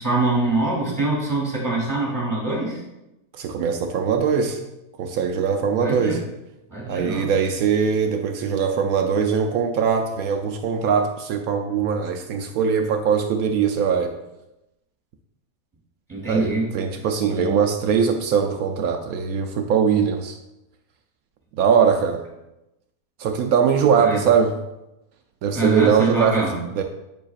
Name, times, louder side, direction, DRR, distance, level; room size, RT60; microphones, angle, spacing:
voice 1, 0.0-2.8 5.8-6.2 6.7-7.3 16.1-16.7 17.3-17.6 24.0-24.2 25.5-26.6, right 2 dB, 15° right, -4 dB, 2.7 m, -24 dB
voice 2, 3.3-4.6 5.0-6.2 6.9-14.1 16.3-20.4 21.6-22.2 23.2-24.6 25.4-26.5 26.7-26.8, right 6 dB, 80° right, 5 dB, 1.1 m, -21 dB
8.2 x 7.1 x 2.4 m, 0.93 s
omnidirectional pair, 1.5 m